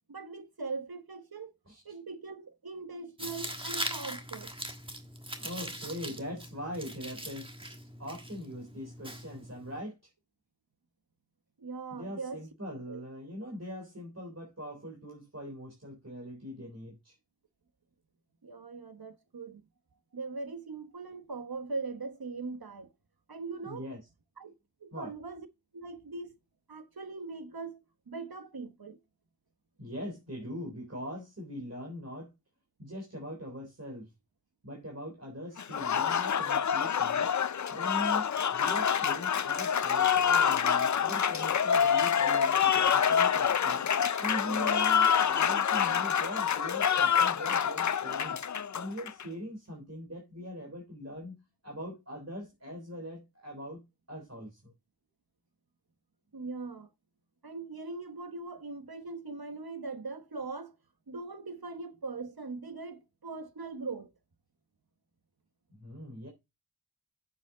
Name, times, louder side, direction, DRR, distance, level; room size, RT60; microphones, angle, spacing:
voice 1, 0.1-1.5 1.8-4.5 11.6-12.4 12.9-13.0 18.4-19.6 20.1-22.9 23.3-23.9 24.4-24.5 24.8-25.5 25.7-26.4 26.7-29.0 56.3-56.9 57.4-60.8 61.1-64.1, right 3 dB, 70° right, 1.2 m, -40 dB
Tearing, 3.2-9.8, right 1 dB, 15° right, 1.3 m, -41 dB
voice 2, 5.4-7.7 8.0-10.0 11.9-17.1 23.6-24.0 24.9-25.1 29.8-32.3 32.8-34.1 34.6-43.9 44.2-48.4 48.7-51.4 51.6-53.8 54.1-54.7 65.7-66.3, equal, 40° right, 3.7 m, -41 dB
Applause, 35.6-49.2, left 8 dB, 50° left, 0.4 m, -27 dB
9.1 x 7.1 x 3.9 m
wide cardioid pair, 50°, 38 cm